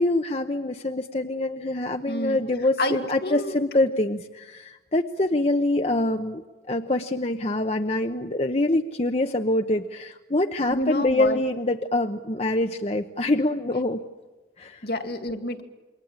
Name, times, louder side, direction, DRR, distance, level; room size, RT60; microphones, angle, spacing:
voice 1, 0.0-6.4 6.7-14.0 14.6-14.8, left 1 dB, 35° left, 5 dB, 0.9 m, -25 dB
voice 2, 2.1-2.4 2.8-2.9 3.2-3.6 10.7-11.4 14.8-15.6, left 1 dB, 65° left, 6 dB, 2.4 m, -28 dB
28.0 x 23.0 x 8.7 m, 1.2 s
head